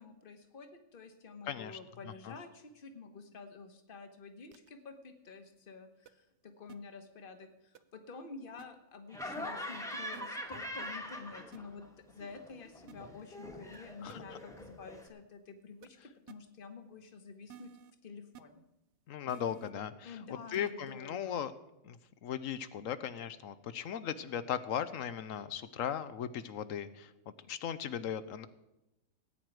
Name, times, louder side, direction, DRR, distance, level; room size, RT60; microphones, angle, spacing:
voice 1, 0.0-16.0 16.3-17.7 18.0-18.6 20.0-21.3, left 4 dB, 40° left, 7 dB, 1.3 m, -49 dB
voice 2, 1.4-1.8 2.0-2.3 14.0-14.4 19.1-20.2 20.5-21.5 21.8-27.1 27.5-28.5, left 9 dB, 75° left, 13 dB, 1.0 m, -38 dB
sound 1, 4.5-4.7 6.1-6.2 6.7-6.8 7.7-7.8 8.6-8.7 10.1-10.2 11.5-11.6 12.9-13.0 13.7-13.8 14.1-14.2 15.8-15.9 16.3-16.4 17.5-17.9 18.3-18.4 19.3-19.7 20.5-20.7, right 10 dB, 65° right, 0.9 m, -52 dB
Laughter, 9.1-11.9 12.2-15.1, equal, ahead, 1.3 m, -43 dB
18.0 x 9.3 x 4.7 m, 0.94 s
omnidirectional pair, 1.4 m